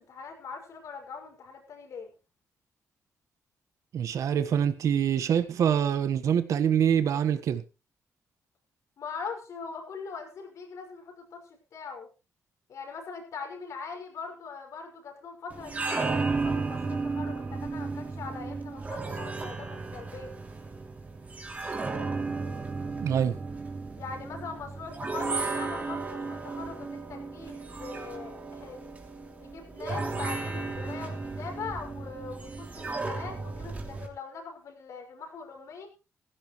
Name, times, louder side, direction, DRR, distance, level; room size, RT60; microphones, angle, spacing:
voice 1, 0.0-2.1 9.0-12.1 12.7-20.3 24.0-28.8 29.4-35.9, left 5 dB, 70° left, 5.8 m, -41 dB
voice 2, 3.9-7.6 23.0-23.4, right 8 dB, 75° right, 1.4 m, -25 dB
sound 1, 15.5-34.1, right 3 dB, 25° right, 3.1 m, -34 dB
16.0 x 16.0 x 3.2 m
wide cardioid pair, 140°, 6 cm